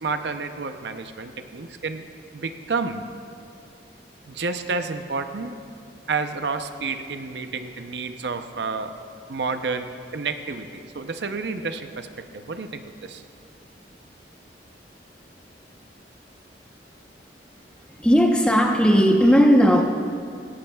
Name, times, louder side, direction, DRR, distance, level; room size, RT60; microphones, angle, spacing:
voice 1, 0.0-2.1 2.3-3.0 4.3-5.6 6.1-8.9 9.3-13.2, right 4 dB, 70° right, 8 dB, 0.6 m, -30 dB
voice 2, 17.9-19.8, equal, 5° left, 2 dB, 0.8 m, -16 dB
17.5 x 16.5 x 2.3 m, 2.5 s
head